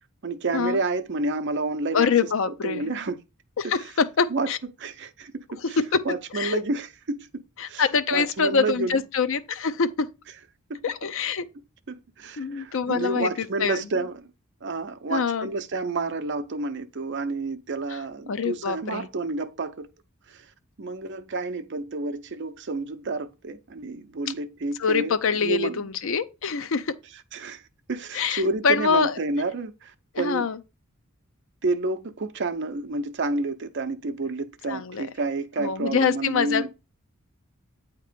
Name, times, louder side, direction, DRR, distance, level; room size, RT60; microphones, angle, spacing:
voice 1, 0.2-2.1 2.5-3.2 3.6-3.9 4.3-4.5 4.8-5.8 6.0-7.3 7.6-7.8 8.1-9.0 10.7-10.8 11.9-14.2 14.6-19.9 20.3-20.5 20.8-25.8 27.3-27.6 27.9-30.5 31.6-36.7, right 3 dB, 55° right, 0.6 m, -30 dB
voice 2, 1.9-2.9 3.6-4.6 5.6-6.0 6.3-6.6 7.6-10.1 10.8-11.5 12.4-13.9 15.1-15.5 18.3-19.1 24.8-26.9 28.1-29.1 30.1-30.6 34.7-35.1 35.6-36.7, left 5 dB, 65° left, 0.5 m, -25 dB
8.3 x 3.0 x 5.0 m
head